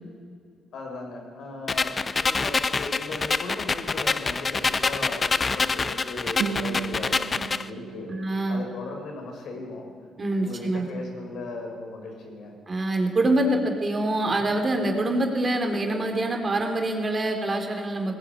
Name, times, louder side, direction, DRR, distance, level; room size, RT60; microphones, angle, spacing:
voice 1, 0.7-8.1 8.5-9.8 10.4-12.6, left 3 dB, 70° left, 2 dB, 5.8 m, -37 dB
sound 1, 1.7-7.7, left 4 dB, 30° left, 0.7 m, -26 dB
Guitar, 6.4-9.4, right 6 dB, 70° right, 1.3 m, -36 dB
voice 2, 8.1-8.6 10.2-10.9 12.7-18.2, right 1 dB, 30° right, 3 dB, 3.8 m, -25 dB
19.0 x 16.5 x 8.7 m, 2.1 s
cardioid pair, 90°, 0 cm